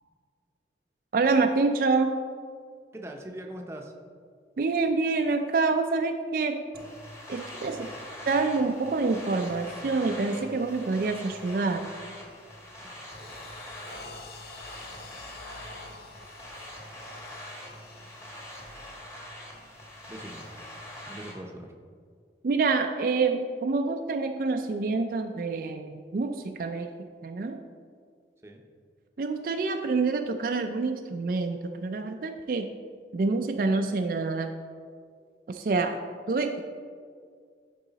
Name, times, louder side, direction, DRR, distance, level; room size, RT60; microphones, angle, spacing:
voice 1, 1.1-2.1 4.6-6.6 7.3-7.9 8.3-11.9 22.4-27.6 29.2-32.7 33.1-34.5 35.5-36.0 36.3-36.6, right 3 dB, 50° right, 5 dB, 0.3 m, -27 dB
voice 2, 2.9-3.9 7.7-8.0 20.1-20.4 21.1-21.7 28.4-28.6, right 1 dB, 15° right, 2 dB, 0.6 m, -41 dB
sound 1, 6.7-21.3, left 1 dB, 15° left, 1.2 m, -43 dB
sound 2, 11.0-11.2 11.7-12.0 12.5-20.6, left 3 dB, 60° left, 0.7 m, -49 dB
11.0 x 4.8 x 4.0 m, 2.1 s
head